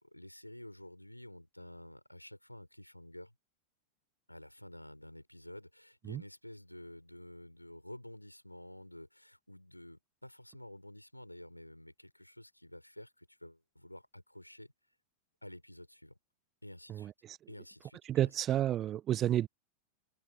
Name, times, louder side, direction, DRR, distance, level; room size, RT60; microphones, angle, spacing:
voice 1, 0.0-3.3 4.3-14.9 15.4-16.2 16.6-17.1 17.5-18.4, left 1 dB, 90° left, 4.7 m, -51 dB
voice 2, 16.9-17.4 18.1-19.5, right 12 dB, 30° right, 0.5 m, -31 dB
open air
figure-of-eight pair, 90°, 0 cm